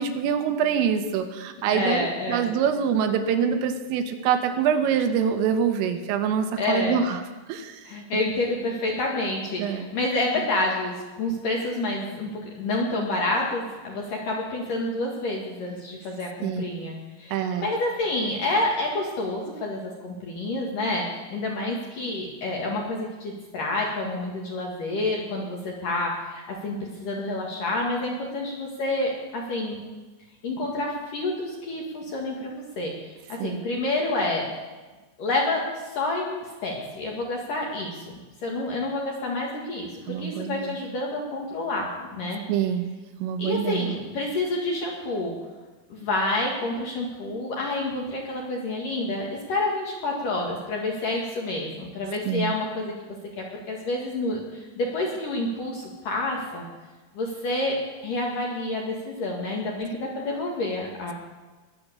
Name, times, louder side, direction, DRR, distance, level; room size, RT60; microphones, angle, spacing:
voice 1, 0.0-7.2 7.5-7.8 9.6-9.9 16.4-16.6 17.3-17.7 33.4-33.6 40.1-40.8 42.5-42.9 43.2-44.0 52.3-52.5, right 7 dB, 80° right, 7 dB, 3.4 m, -25 dB
voice 2, 1.7-2.5 6.6-7.0 7.8-29.8 30.4-34.5 35.2-38.1 38.4-42.4 43.4-45.3 45.9-56.7 57.1-57.8 58.0-61.1, left 2 dB, 60° left, -2 dB, 2.5 m, -28 dB
21.0 x 8.5 x 6.8 m, 1.2 s
omnidirectional pair, 6.0 m